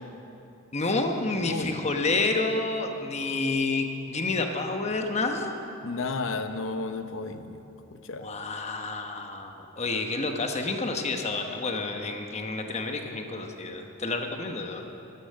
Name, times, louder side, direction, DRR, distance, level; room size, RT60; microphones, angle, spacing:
voice 1, 0.7-5.6 8.2-14.8, left 3 dB, 35° left, 4 dB, 1.0 m, -29 dB
voice 2, 1.3-1.7 5.8-7.6 7.9-8.3, left 3 dB, 65° left, 9 dB, 0.8 m, -33 dB
12.5 x 11.5 x 6.5 m, 2.9 s
head